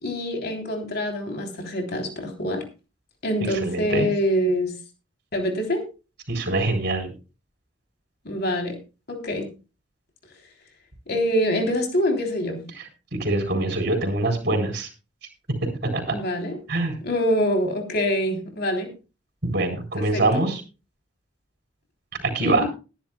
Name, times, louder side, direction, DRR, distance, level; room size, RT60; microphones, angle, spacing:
voice 1, 0.0-2.6 3.2-4.7 5.3-5.8 8.2-8.8 9.1-9.5 11.1-12.6 16.1-16.6 17.0-18.9 20.0-20.5 22.4-22.6, equal, 55° left, 3 dB, 3.3 m, -25 dB
voice 2, 3.6-4.1 6.3-7.1 13.2-14.9 15.9-16.0 16.7-17.0 19.4-20.6 22.3-22.7, right 2 dB, 55° right, 3 dB, 3.8 m, -24 dB
20.5 x 10.5 x 2.3 m, 0.31 s
head